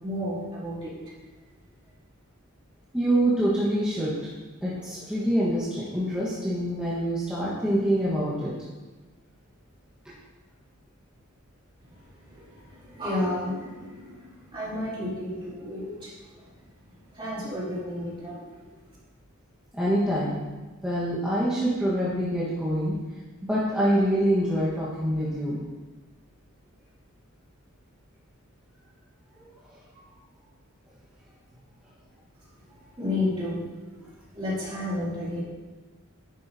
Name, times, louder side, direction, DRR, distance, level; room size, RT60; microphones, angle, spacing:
voice 1, 0.0-0.9 12.3-16.1 17.1-18.8 33.0-33.7 34.0-35.4, left 1 dB, 25° right, -8 dB, 2.7 m, -32 dB
voice 2, 2.9-4.2 4.6-8.5 19.7-20.4 20.8-23.0 23.4-25.6 29.9-30.0, right 1 dB, 5° right, -10 dB, 1.4 m, -25 dB
10.5 x 7.8 x 2.8 m, 1.2 s
head